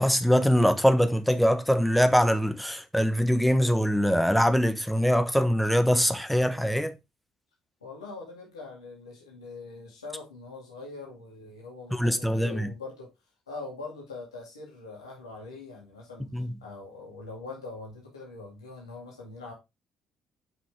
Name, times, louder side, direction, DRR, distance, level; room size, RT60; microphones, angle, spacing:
voice 1, 0.0-6.9 11.9-12.7 16.3-16.5, equal, ahead, 1.3 m, -23 dB
voice 2, 7.8-13.1 13.5-19.5, left 3 dB, 85° left, 2.0 m, -43 dB
7.6 x 5.8 x 3.6 m
figure-of-eight pair, 45°, 3 cm